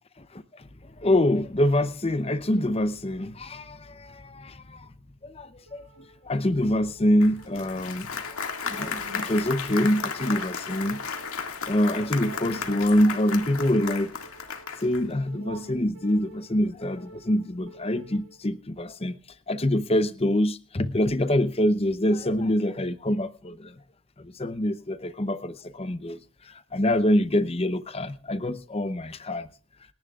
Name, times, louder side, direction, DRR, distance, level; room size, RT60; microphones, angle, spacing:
voice 1, 0.2-0.6 1.0-4.9 5.2-5.9 6.2-8.2 8.6-11.0 11.7-14.1 14.8-19.2 19.5-23.7 24.2-26.2 26.7-29.5, left 1 dB, 25° left, 13 dB, 0.7 m, -25 dB
sound 1, 5.7-18.6, right 3 dB, 70° right, 1.7 m, -49 dB
Applause, 7.2-15.1, left 6 dB, 80° left, 2.0 m, -34 dB
29.5 x 10.5 x 2.4 m, 0.33 s
head